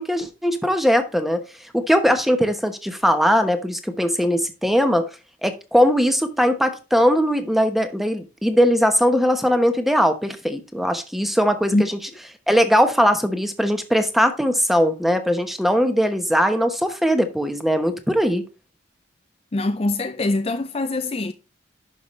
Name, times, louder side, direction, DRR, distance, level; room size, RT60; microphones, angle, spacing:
voice 1, 0.0-1.4 1.7-5.1 5.4-11.8 12.5-18.4, equal, ahead, 1.0 m, -20 dB
voice 2, 19.5-21.3, left 2 dB, 30° left, 0.5 m, -23 dB
11.0 x 5.7 x 3.1 m
head